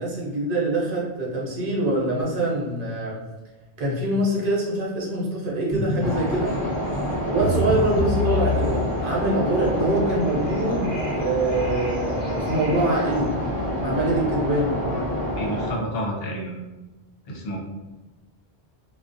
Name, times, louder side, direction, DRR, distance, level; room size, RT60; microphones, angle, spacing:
voice 1, 0.0-3.2 3.8-6.6 7.3-13.4 13.8-14.9 17.5-17.6, right 1 dB, 55° right, -4 dB, 0.9 m, -24 dB
sound 1, 5.7-6.1 6.4-13.3, left 2 dB, 25° left, 1.2 m, -30 dB
sound 2, 6.0-15.7, equal, 10° left, 0.7 m, -27 dB
voice 2, 15.4-16.6 17.3-17.6, equal, 70° left, -1 dB, 0.8 m, -30 dB
2.4 x 2.1 x 2.5 m, 1.1 s
omnidirectional pair, 1.1 m